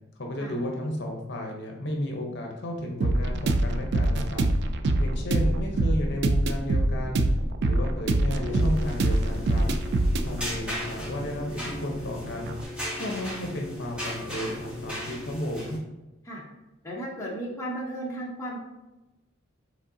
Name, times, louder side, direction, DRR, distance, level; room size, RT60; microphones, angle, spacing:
voice 1, 0.2-4.4 5.0-7.3 7.6-9.7 10.2-12.6 13.0-15.8, left 1 dB, 55° left, 0 dB, 0.8 m, -33 dB
sound 1, 3.0-12.6, right 1 dB, 55° right, 0.4 m, -25 dB
sound 2, 8.3-15.8, left 1 dB, 5° right, 1.1 m, -36 dB
voice 2, 16.8-18.6, right 1 dB, 15° left, -4 dB, 0.8 m, -35 dB
5.1 x 3.6 x 2.7 m, 1.0 s
head